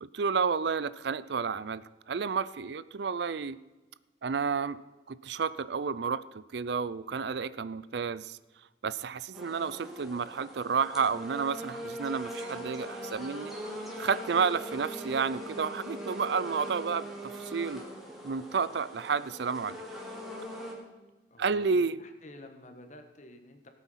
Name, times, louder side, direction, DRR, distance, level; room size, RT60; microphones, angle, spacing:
voice 1, 0.0-3.6 4.2-4.8 5.1-8.4 8.8-13.5 14.0-17.8 18.2-19.8 21.4-22.0, right 5 dB, 65° right, 17 dB, 0.5 m, -31 dB
sound 1, 9.3-20.7, right 1 dB, ahead, 2.4 m, -41 dB
voice 2, 21.3-23.7, left 1 dB, 40° left, 7 dB, 1.5 m, -50 dB
18.0 x 8.3 x 5.7 m, 1.2 s
head